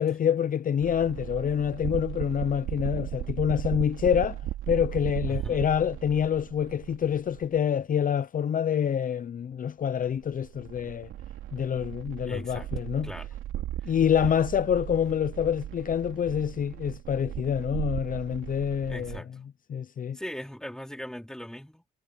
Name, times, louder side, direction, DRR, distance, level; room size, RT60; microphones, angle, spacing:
voice 1, 0.0-4.4 4.7-11.1 11.5-13.1 13.8-19.2 19.7-20.2, left 8 dB, 45° left, 0.6 m, -27 dB
sound 1, 0.8-7.6 9.9-19.2, right 13 dB, 85° right, 3.0 m, -36 dB
voice 2, 5.3-5.6 12.2-12.7 13.0-13.3 13.8-14.3 18.9-19.3 20.1-21.9, equal, 5° left, 4.6 m, -40 dB
cardioid pair, 90°, 20 cm